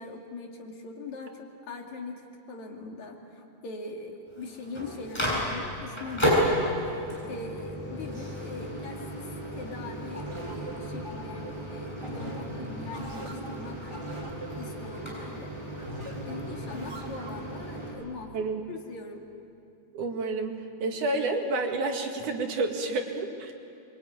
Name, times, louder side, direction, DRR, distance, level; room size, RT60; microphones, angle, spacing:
voice 1, 0.0-2.2 2.5-6.6 7.3-14.0 14.6-15.5 16.3-19.2, left 3 dB, 70° left, 1 dB, 3.8 m, -41 dB
Microwave oven, 4.3-17.9, equal, 10° left, 7.8 m, -33 dB
sound 1, 10.1-17.6, equal, 10° right, 2.2 m, -41 dB
voice 2, 19.9-23.5, right 3 dB, 80° right, 3 dB, 3.6 m, -30 dB
25.5 x 23.5 x 9.6 m, 2.7 s
omnidirectional pair, 3.5 m